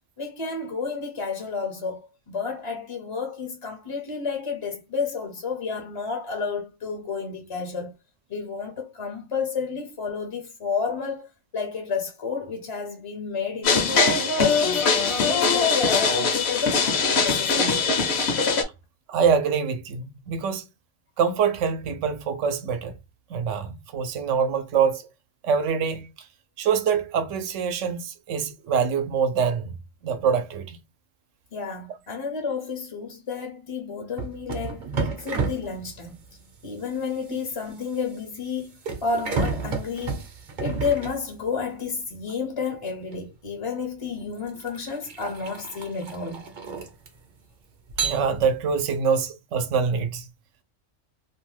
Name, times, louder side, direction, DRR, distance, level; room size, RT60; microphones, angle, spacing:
voice 1, 0.2-7.9 8.3-18.0 31.5-36.2 36.6-38.7 39.0-40.2 40.6-46.4, left 5 dB, 40° left, 0.5 m, -31 dB
sound 1, 13.6-18.6, left 4 dB, 65° left, 0.8 m, -21 dB
voice 2, 19.1-20.7 21.2-22.9 23.3-25.0 25.4-26.1 26.6-29.8 30.0-30.8 48.0-50.3, right 6 dB, 85° right, 0.9 m, -24 dB
sound 2, 34.2-41.8 43.1-43.3 44.0-47.4 47.9-48.8, right 4 dB, 50° right, 0.7 m, -32 dB
2.6 x 2.2 x 3.0 m
omnidirectional pair, 1.2 m